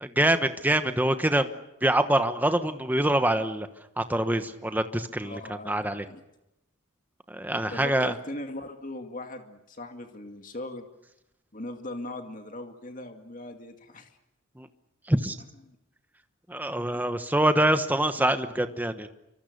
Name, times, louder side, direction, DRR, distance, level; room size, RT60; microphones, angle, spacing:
voice 1, 0.0-1.5 1.8-3.7 4.0-6.0 7.3-8.1 14.6-14.7 15.1-15.4 16.5-19.1, right 1 dB, 10° right, 9 dB, 1.1 m, -25 dB
voice 2, 5.2-6.2 7.5-10.8 11.5-14.1 15.7-15.8 16.9-17.2, left 1 dB, 40° left, 5 dB, 2.3 m, -39 dB
27.5 x 24.5 x 6.7 m, 0.90 s
head